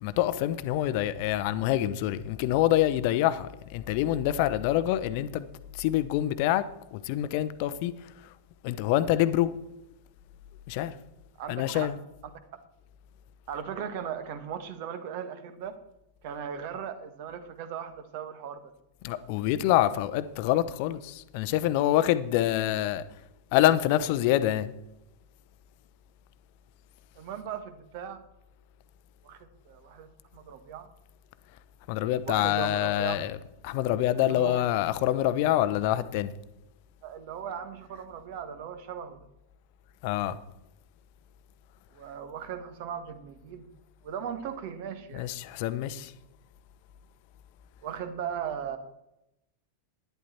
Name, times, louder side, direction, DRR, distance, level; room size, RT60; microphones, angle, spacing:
voice 1, 0.0-5.4 5.7-8.1 8.6-9.5 10.7-10.9 11.5-12.0 19.0-23.0 23.5-24.7 31.9-33.4 33.6-36.3 40.0-40.4 45.1-46.1, left 13 dB, 45° left, 0.7 m, -26 dB
voice 2, 11.4-11.9 13.5-15.8 16.2-18.7 27.1-28.2 29.2-30.9 32.2-33.1 34.3-34.6 37.0-39.3 41.9-43.7 44.0-45.3 47.8-48.8, right 8 dB, 50° right, 1.4 m, -38 dB
11.5 x 10.5 x 4.3 m
figure-of-eight pair, 90°, 0 cm